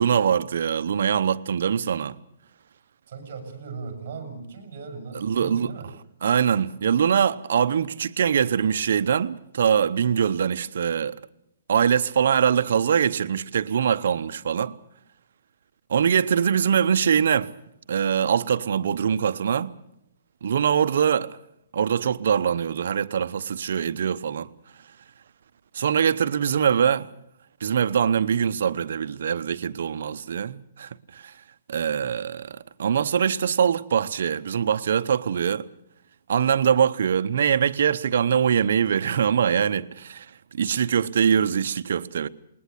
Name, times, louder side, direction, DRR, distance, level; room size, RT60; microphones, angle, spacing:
voice 1, 0.0-2.2 5.1-5.7 6.2-11.2 11.7-14.7 15.9-17.5 17.9-19.7 20.4-21.4 21.7-24.5 25.7-27.1 27.6-31.3 31.7-35.7 36.3-40.3 40.5-42.3, right 8 dB, 65° right, 0.8 m, -23 dB
voice 2, 3.1-5.9, right 5 dB, 45° right, 6.4 m, -37 dB
20.0 x 20.0 x 8.3 m
hypercardioid pair, 170°, 0 cm